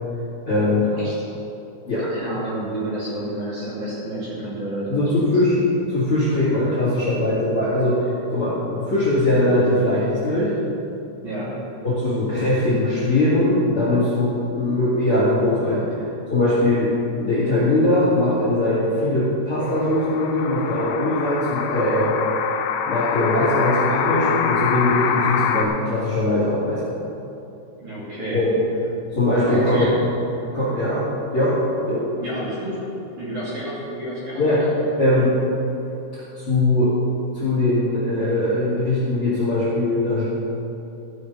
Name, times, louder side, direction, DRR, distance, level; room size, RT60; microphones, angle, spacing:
voice 1, 0.5-1.0 1.9-2.0 4.9-5.6 5.9-10.5 11.8-15.8 16.3-16.9 17.2-22.2 22.9-27.0 28.3-28.5 29.1-29.8 30.5-31.6 31.9-32.1 34.4-34.7 35.0-35.3 36.3-36.9 37.3-40.2, left 1 dB, 40° left, -10 dB, 2.1 m, -21 dB
voice 2, 2.0-5.1 5.6-5.7 11.2-11.6 27.8-28.4 29.4-29.9 32.2-32.8 33.2-34.8, right 1 dB, 45° right, -9 dB, 3.5 m, -30 dB
sound 1, 19.6-25.7, left 7 dB, 80° left, 3.1 m, -25 dB
14.5 x 6.7 x 5.5 m, 2.9 s
omnidirectional pair, 5.5 m